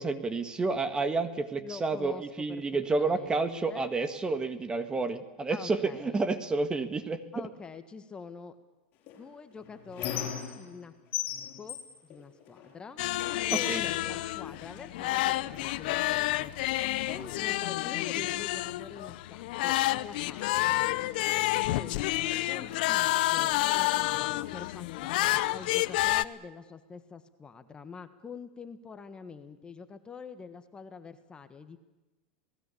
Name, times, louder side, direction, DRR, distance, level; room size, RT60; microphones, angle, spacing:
voice 1, 0.0-7.5 13.5-13.8, right 3 dB, 15° right, 10 dB, 1.7 m, -30 dB
voice 2, 1.6-2.2 2.5-3.9 5.5-6.2 7.3-8.6 9.2-11.3 11.6-13.0 13.5-16.5 17.1-20.9 21.7-22.0 22.5-31.8, left 5 dB, 15° left, 10 dB, 1.5 m, -46 dB
Squeak, 9.1-10.8 11.1-12.8 13.2-14.9 15.6-15.8 16.1-17.1, left 11 dB, 40° left, 7.2 m, -38 dB
sound 1, 13.0-26.2, left 17 dB, 65° left, 0.8 m, -29 dB
28.0 x 19.0 x 8.5 m, 1.1 s
supercardioid pair, 130°, 5 cm